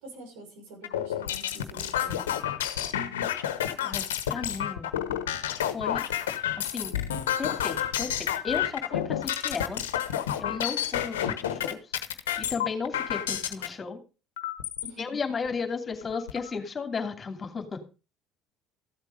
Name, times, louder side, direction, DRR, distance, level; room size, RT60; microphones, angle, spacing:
voice 1, 0.0-2.3 14.8-15.1, right 1 dB, 80° right, 1 dB, 6.1 m, -45 dB
sound 1, 0.8-13.7 14.4-14.9 15.5-15.6 15.9-16.5, left 10 dB, 90° left, 1.1 m, -30 dB
voice 2, 3.8-4.9 5.7-6.0 6.6-6.9 7.4-9.8 10.4-11.8 12.4-14.0 15.0-17.9, left 5 dB, 35° left, 5 dB, 2.8 m, -34 dB
14.5 x 8.1 x 5.1 m, 0.33 s
hypercardioid pair, 65°, 0 cm